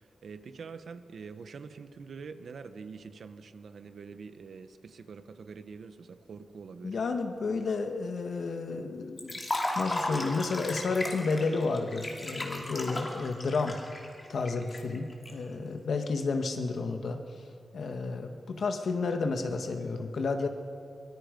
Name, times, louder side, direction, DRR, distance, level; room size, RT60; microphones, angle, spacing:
voice 1, 0.2-6.9, right 5 dB, 60° right, 10 dB, 1.1 m, -45 dB
voice 2, 6.8-9.4 9.7-13.8 14.3-17.2 17.7-20.5, left 4 dB, 60° left, 5 dB, 1.6 m, -31 dB
Liquid, 9.2-15.3, left 1 dB, 25° left, 2.7 m, -35 dB
24.0 x 22.5 x 5.3 m, 2.3 s
wide cardioid pair, 180°, 0 cm